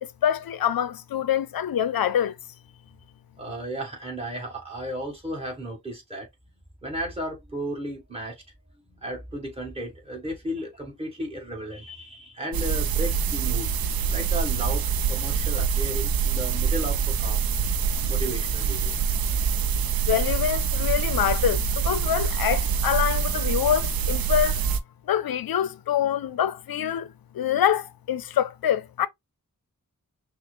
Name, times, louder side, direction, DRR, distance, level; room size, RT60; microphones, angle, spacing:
voice 1, 0.0-2.3 20.1-24.8 25.1-29.1, left 10 dB, 90° left, 0.5 m, -25 dB
voice 2, 3.4-6.3 6.8-8.4 8.8-13.7 14.1-17.4 18.1-18.9, equal, 15° right, 1.9 m, -34 dB
sound 1, 12.5-24.8, right 6 dB, 90° right, 0.5 m, -25 dB
5.9 x 2.1 x 2.4 m
wide cardioid pair, 90°, 34 cm